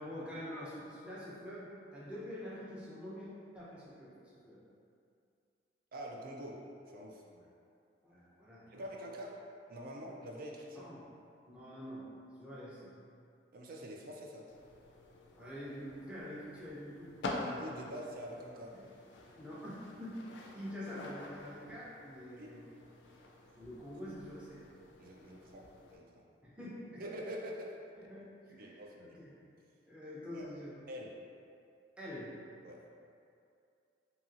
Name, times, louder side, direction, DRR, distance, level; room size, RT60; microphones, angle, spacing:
voice 1, 0.0-3.3 3.5-4.6 7.3-7.4 8.0-8.8 10.7-11.1 11.5-12.1 12.4-12.9 15.3-17.1 17.7-17.9 18.7-18.9 19.3-20.3 20.5-22.6 23.6-24.6 26.4-27.0 28.0-29.4 29.9-30.8 32.0-32.4, equal, 5° right, -9 dB, 0.6 m, -46 dB
voice 2, 5.9-6.6 6.9-7.2 8.7-9.3 9.7-10.9 13.5-14.5 17.4-18.7 22.4-22.6 25.0-25.7 25.9-26.2 27.0-28.1 28.6-29.2 30.3-30.4 30.9-31.1 32.6-32.8, equal, 55° right, -1 dB, 0.4 m, -45 dB
sound 1, 14.5-26.0, left 2 dB, 80° left, 0.4 m, -48 dB
2.8 x 2.7 x 2.5 m, 2.4 s
head